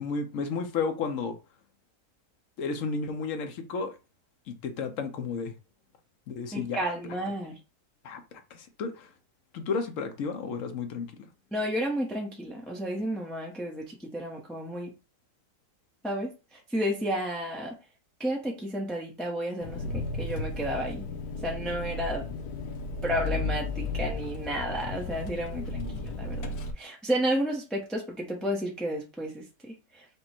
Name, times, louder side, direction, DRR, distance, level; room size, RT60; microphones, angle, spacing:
voice 1, 0.0-1.4 2.6-4.0 4.6-5.5 6.3-6.9 8.0-9.1 9.5-11.3 25.5-26.1, left 5 dB, 65° left, 1.0 m, -33 dB
voice 2, 6.5-7.6 11.5-14.9 16.0-17.8 18.2-21.0 21.4-22.2 23.0-30.1, equal, ahead, 0.5 m, -32 dB
Engine, 19.6-26.7, left 3 dB, 80° left, 1.3 m, -34 dB
5.1 x 2.1 x 4.3 m
omnidirectional pair, 1.6 m